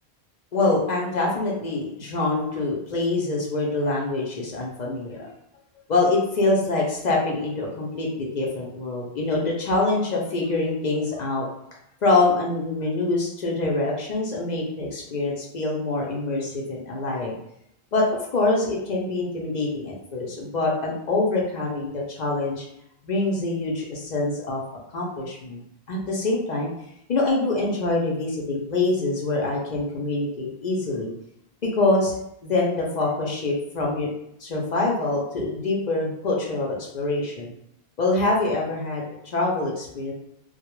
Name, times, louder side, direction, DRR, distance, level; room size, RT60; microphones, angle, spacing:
voice 1, 0.5-5.3 5.9-11.5 12.0-17.3 17.9-18.0 18.3-22.6 23.0-24.6 24.9-25.6 25.9-26.7 27.1-31.1 31.8-32.2 32.4-34.1 34.4-37.5 38.0-39.0 39.3-40.1, left 2 dB, 55° left, -2 dB, 0.5 m, -25 dB
2.2 x 2.0 x 3.0 m, 0.77 s
omnidirectional pair, 1.1 m